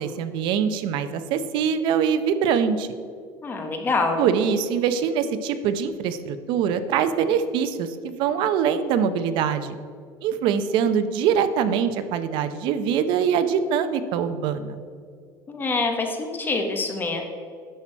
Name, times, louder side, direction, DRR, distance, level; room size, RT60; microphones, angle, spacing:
voice 1, 0.0-2.9 4.2-9.7 10.2-14.8, right 7 dB, 60° right, 11 dB, 0.6 m, -23 dB
voice 2, 3.4-4.2 15.5-17.2, left 3 dB, 20° left, 3 dB, 1.0 m, -25 dB
10.0 x 6.1 x 4.5 m, 2.2 s
cardioid pair, 155°, 9 cm